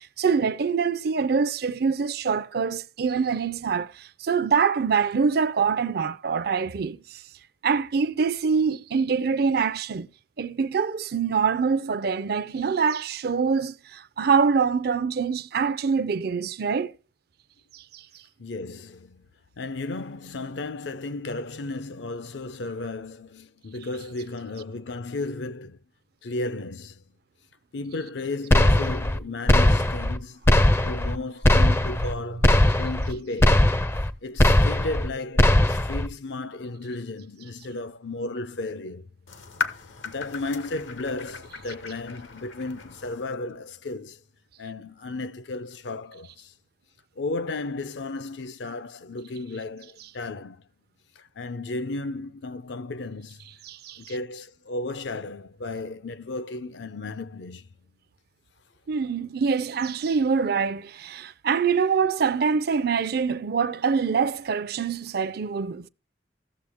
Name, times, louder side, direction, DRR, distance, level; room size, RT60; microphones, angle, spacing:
voice 1, 0.0-7.2 7.6-10.1 10.4-16.9 17.7-18.0 53.6-54.0 58.9-65.9, right 5 dB, 55° right, 0.4 m, -25 dB
voice 2, 18.4-19.3 19.6-25.8 26.2-27.0 27.7-30.4 30.8-33.6 34.2-39.1 40.0-44.2 44.6-46.5 47.2-50.6 51.2-53.4 54.0-57.7, left 2 dB, 70° left, 0.6 m, -34 dB
sound 1, 28.5-29.2 29.5-30.2 30.5-31.2 31.4-32.1 32.4-33.1 33.4-34.1 34.4-35.1 35.4-36.1, left 1 dB, 15° left, 0.4 m, -19 dB
sound 2, 39.3-43.3, left 5 dB, 85° left, 1.1 m, -36 dB
14.5 x 6.9 x 3.5 m
head